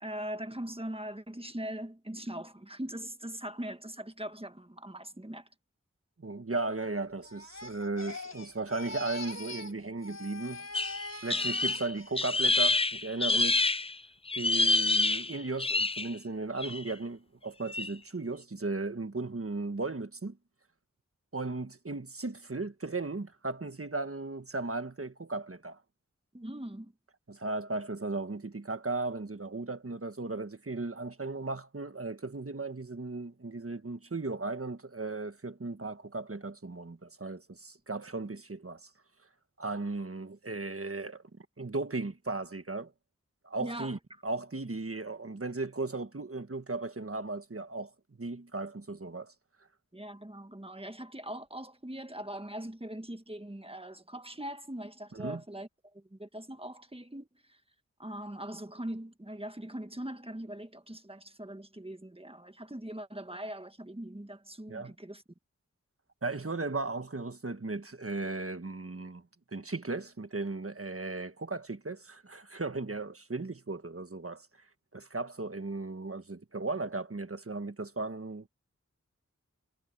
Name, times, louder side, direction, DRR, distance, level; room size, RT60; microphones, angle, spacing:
voice 1, 0.0-5.5 26.3-26.9 43.6-43.9 49.9-55.7 55.9-57.3 58.0-65.2, right 1 dB, 20° right, 1.6 m, -41 dB
voice 2, 6.2-10.7 11.2-13.6 14.3-20.4 21.3-25.8 27.3-38.9 39.6-41.2 41.6-42.9 43.4-47.9 48.2-49.3 55.1-55.4 64.7-64.9 66.2-69.2 69.5-74.5 74.9-78.5, right 3 dB, 50° right, 1.4 m, -36 dB
Crying sobbing, 7.2-9.8 10.0-12.2 12.6-13.0, left 2 dB, 60° left, 3.4 m, -43 dB
sound 1, 10.7-13.9 14.3-16.1 16.6-16.9 17.7-17.9, left 3 dB, 20° left, 0.4 m, -27 dB
wide cardioid pair, 50°, 30 cm